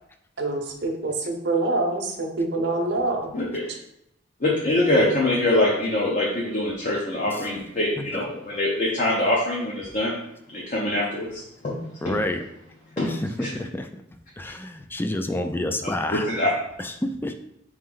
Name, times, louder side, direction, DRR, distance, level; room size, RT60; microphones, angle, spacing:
voice 1, 0.4-3.3, right 2 dB, 60° right, 1 dB, 0.8 m, -25 dB
voice 2, 3.3-3.7 4.4-10.1 10.5-11.8 12.0-12.2 13.0-13.1 13.4-13.5 15.8-16.5, left 1 dB, 40° left, -4 dB, 0.7 m, -24 dB
voice 3, 12.0-12.5 13.0-14.0 14.4-16.3 16.8-17.4, left 1 dB, 10° left, 7 dB, 0.3 m, -29 dB
4.0 x 3.2 x 3.8 m, 0.78 s
head